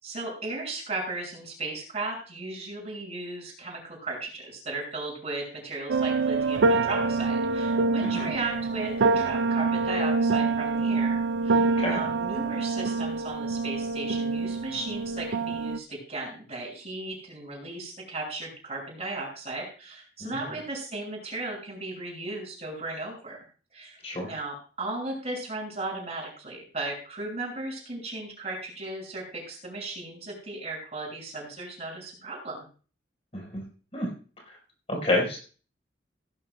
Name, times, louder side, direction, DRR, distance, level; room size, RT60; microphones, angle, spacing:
voice 1, 0.0-23.4 23.7-24.0 24.2-32.7, right 2 dB, 35° right, -1 dB, 6.2 m, -36 dB
sound 1, 5.9-15.8, right 3 dB, 75° right, 0.4 m, -26 dB
voice 2, 8.0-8.3 11.8-12.0 20.2-20.3 24.0-24.3 33.3-33.6 33.9-34.1 34.9-35.4, left 1 dB, 35° left, -1 dB, 4.2 m, -28 dB
17.0 x 14.0 x 2.2 m, 0.39 s
head